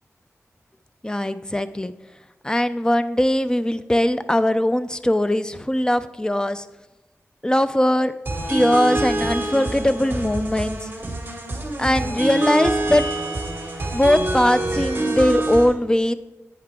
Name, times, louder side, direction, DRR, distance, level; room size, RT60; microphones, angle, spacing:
voice 1, 1.0-1.9 2.4-6.6 7.4-8.1 8.5-10.9 11.8-13.1 13.9-16.1, left 1 dB, 15° left, 12 dB, 0.5 m, -20 dB
sound 1, 8.3-15.6, right 2 dB, 40° right, 2.7 m, -26 dB
10.5 x 9.3 x 3.7 m, 1.1 s
wide cardioid pair, 70°, 5 cm